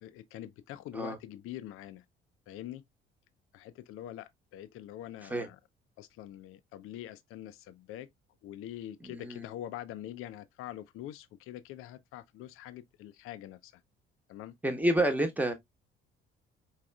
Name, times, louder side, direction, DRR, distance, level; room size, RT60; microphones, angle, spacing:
voice 1, 0.0-2.0 2.5-2.8 3.5-5.6 6.0-8.1 8.4-13.8 14.3-14.5, left 12 dB, 50° left, 0.5 m, -44 dB
voice 2, 9.0-9.4 14.6-15.5, right 1 dB, 5° right, 1.1 m, -29 dB
4.7 x 3.1 x 2.3 m
figure-of-eight pair, 50°, 29 cm